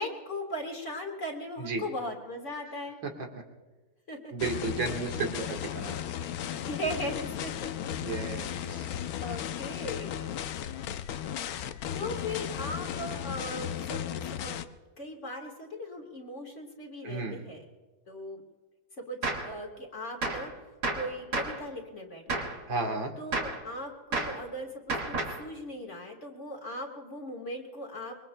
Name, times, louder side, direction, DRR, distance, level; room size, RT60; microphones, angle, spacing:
voice 1, 0.0-3.0 4.1-4.3 6.6-7.7 8.5-10.2 11.9-14.7 15.0-17.7 18.1-18.4 19.1-20.5 20.9-22.5 23.2-28.2, left 1 dB, 40° left, 1 dB, 1.9 m, -38 dB
voice 2, 4.3-6.0 8.0-8.9 17.0-17.4 22.7-23.1, right 3 dB, 75° right, 1 dB, 2.3 m, -33 dB
sound 1, 4.4-14.6, left 10 dB, 70° left, 0.9 m, -35 dB
Gunshot gunfire, 19.2-19.5 20.2-20.5 20.8-21.6 22.3-22.6 23.3-23.6 24.1-24.4 24.9-25.4, right 2 dB, 55° right, 2.2 m, -31 dB
25.0 x 22.5 x 2.2 m, 1.2 s
omnidirectional pair, 2.1 m